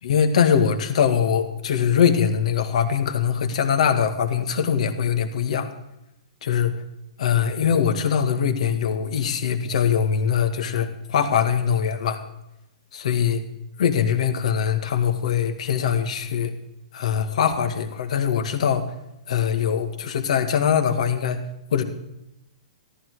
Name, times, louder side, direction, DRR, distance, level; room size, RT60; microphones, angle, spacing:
voice 1, 0.0-5.7 6.4-6.7 7.2-12.2 13.0-13.4 13.8-16.5 16.9-18.9 19.3-21.4 21.7-21.8, left 7 dB, 65° left, 8 dB, 1.9 m, -22 dB
14.0 x 13.0 x 4.8 m, 0.86 s
hypercardioid pair, 155°, 4 cm